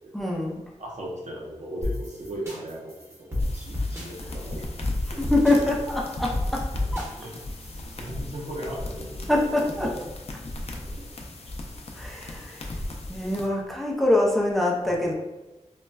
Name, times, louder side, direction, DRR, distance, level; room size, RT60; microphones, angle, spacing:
voice 1, 0.1-0.6 5.1-6.7 6.9-7.1 9.3-9.9 11.9-12.7 13.1-15.1, left 1 dB, ahead, -2 dB, 0.5 m, -24 dB
voice 2, 0.8-2.9 3.2-4.6 7.2-7.3 7.9-9.3 9.8-9.9 10.9-11.0 14.9-15.1, right 1 dB, 75° right, -3 dB, 0.7 m, -37 dB
sound 1, 1.8-8.2, left 2 dB, 25° right, 1.0 m, -32 dB
sound 2, 3.4-13.5, left 1 dB, 60° left, 0.4 m, -36 dB
4.0 x 2.1 x 2.3 m, 1.1 s
wide cardioid pair, 90°, 12 cm